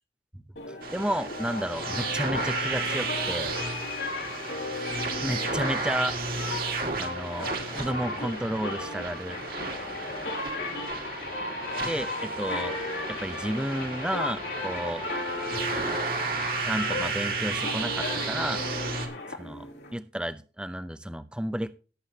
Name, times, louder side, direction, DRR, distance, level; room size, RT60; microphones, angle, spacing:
sound 1, 0.6-19.9, left 2 dB, 75° left, 2.8 m, -35 dB
voice 1, 0.7-3.5 5.2-6.2 7.0-9.4 11.8-12.8 13.1-15.0 15.5-15.7 16.6-18.6 19.3-21.8, equal, 5° right, 12 dB, 0.6 m, -32 dB
sound 2, 0.8-19.1, right 4 dB, 50° right, 2.1 m, -33 dB
18.0 x 7.7 x 2.8 m, 0.35 s
head